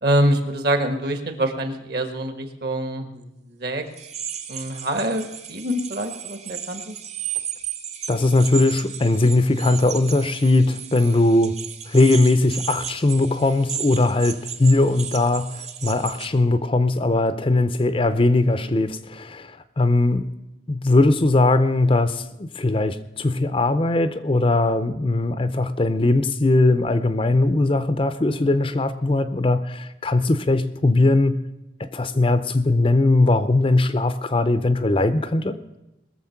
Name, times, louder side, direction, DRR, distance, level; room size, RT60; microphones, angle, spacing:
voice 1, 0.0-3.8 4.5-6.9 14.8-15.0 18.1-18.2, right 1 dB, 55° right, 1.5 m, -25 dB
sound 1, 3.9-16.3, right 9 dB, 35° right, 0.8 m, -34 dB
voice 2, 8.1-11.6 11.9-20.3 20.7-31.4 31.8-35.6, left 2 dB, 30° left, 0.5 m, -20 dB
20.5 x 7.1 x 5.8 m
head